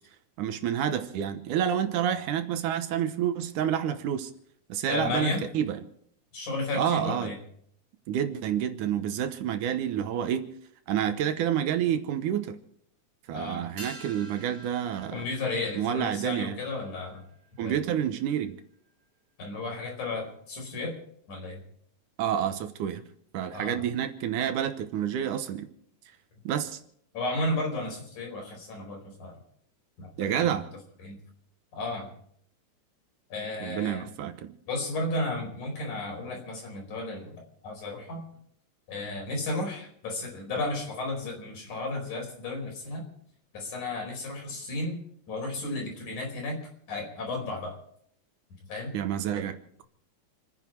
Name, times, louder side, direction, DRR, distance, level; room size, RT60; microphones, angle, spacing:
voice 1, 0.4-4.3 4.7-5.8 6.7-7.3 8.1-10.5 10.9-12.6 13.3-15.2 15.8-16.6 17.6-18.6 22.2-23.0 23.3-25.7 26.4-26.8 30.2-30.7 33.6-34.5 48.9-49.8, right 9 dB, 80° right, 2.6 m, -29 dB
voice 2, 4.9-5.4 6.3-7.4 13.3-13.7 15.1-17.2 17.6-17.8 19.4-21.0 21.3-21.6 23.5-23.8 27.1-29.3 30.0-30.6 31.0-31.2 31.7-32.1 33.3-34.1 34.7-37.4 37.6-38.2 38.9-43.1 43.5-45.0 45.3-46.6 46.9-47.8 48.7-49.0 49.4-49.5, left 2 dB, 70° left, 6.2 m, -33 dB
sound 1, 13.8-18.5 18.7-18.8, right 1 dB, 50° right, 4.9 m, -49 dB
29.0 x 9.8 x 4.6 m
omnidirectional pair, 3.6 m